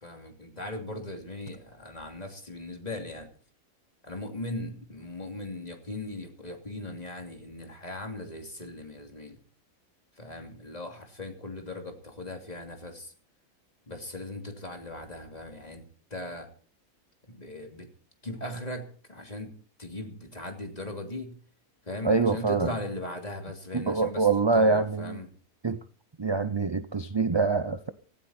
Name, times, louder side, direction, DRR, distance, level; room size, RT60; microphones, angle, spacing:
voice 1, 0.0-3.3 4.0-9.4 10.2-13.1 13.9-15.8 16.1-16.5 17.3-17.9 18.2-19.5 19.8-21.4 21.8-24.3 24.5-25.3, left 1 dB, 30° left, 3.0 m, -38 dB
voice 2, 22.0-22.7 23.7-25.2 25.6-25.8 26.2-27.9, right 4 dB, 30° right, 0.5 m, -25 dB
17.0 x 15.5 x 4.3 m
omnidirectional pair, 1.5 m